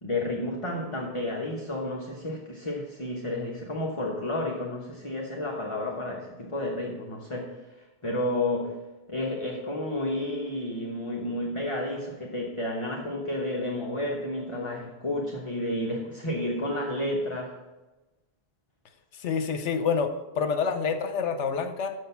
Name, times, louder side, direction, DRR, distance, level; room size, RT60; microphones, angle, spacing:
voice 1, 0.0-7.6 8.0-8.8 9.1-17.6, left 1 dB, 30° left, -2 dB, 0.9 m, -31 dB
voice 2, 19.1-21.9, left 5 dB, 75° left, 9 dB, 1.1 m, -27 dB
6.7 x 6.5 x 5.6 m, 1.1 s
omnidirectional pair, 1.2 m